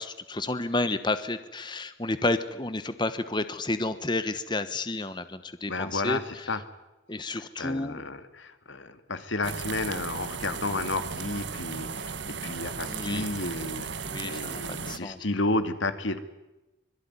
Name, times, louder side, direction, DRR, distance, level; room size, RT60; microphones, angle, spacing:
voice 1, 0.0-6.5 7.1-8.0 12.9-13.3 14.0-15.2, left 2 dB, 25° left, 11 dB, 1.1 m, -31 dB
voice 2, 5.7-6.6 7.6-16.2, left 2 dB, 80° left, 10 dB, 2.5 m, -32 dB
sound 1, 9.4-15.0, right 5 dB, 65° right, 1.4 m, -36 dB
25.0 x 22.0 x 9.8 m, 1.0 s
head